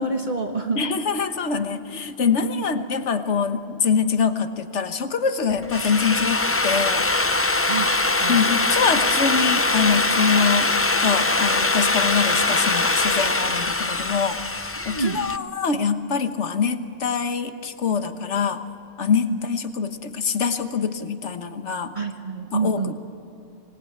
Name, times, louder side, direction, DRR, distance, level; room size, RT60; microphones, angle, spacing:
voice 1, 0.0-0.8 2.4-2.6 7.7-8.4 14.8-15.2 21.9-23.0, right 4 dB, 45° right, 2 dB, 1.4 m, -27 dB
voice 2, 0.8-7.1 8.3-10.7 11.0-18.6 19.0-21.9 22.5-22.8, left 6 dB, 85° left, 8 dB, 1.5 m, -24 dB
Drill, 5.5-15.4, left 2 dB, 15° left, 0.5 m, -22 dB
25.5 x 19.5 x 8.7 m, 2.7 s
omnidirectional pair, 1.2 m